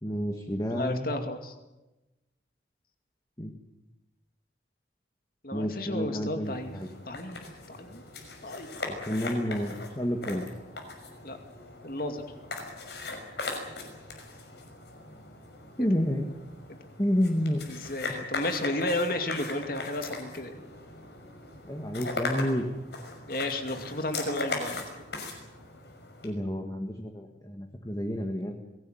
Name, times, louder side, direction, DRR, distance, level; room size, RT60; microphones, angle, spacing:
voice 1, 0.0-1.1 3.4-3.5 5.5-6.9 8.8-10.5 15.8-16.3 17.0-17.6 21.6-22.7 26.2-28.6, equal, 20° left, 3 dB, 1.8 m, -30 dB
voice 2, 0.7-1.5 5.4-6.7 7.1-7.4 7.7-8.0 8.4-8.7 11.2-11.4 11.8-12.2 16.7-16.8 17.7-20.6 23.3-24.8, left 1 dB, 50° left, 6 dB, 2.6 m, -33 dB
sound 1, 6.4-26.3, left 3 dB, 65° left, 5.9 m, -39 dB
23.0 x 17.5 x 9.4 m, 1.0 s
head